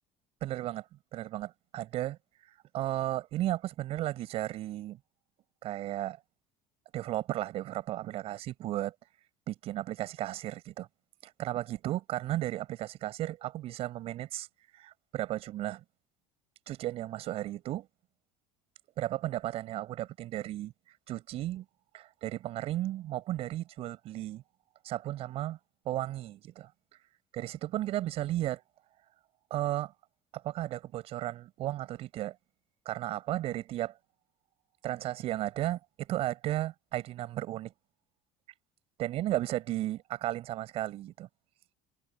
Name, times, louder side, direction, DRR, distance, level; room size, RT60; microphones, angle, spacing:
voice 1, 0.4-0.8 1.1-2.2 2.7-5.0 5.6-6.2 6.9-8.9 9.5-10.9 11.2-14.5 14.7-15.8 16.7-17.9 19.0-20.7 21.1-21.7 21.9-24.4 24.8-25.6 25.8-26.7 27.3-28.6 29.5-29.9 30.3-32.4 32.9-33.9 34.8-37.7 39.0-41.3, right 14 dB, 55° right, 7.6 m, -34 dB
supercardioid pair, 115°, 12 cm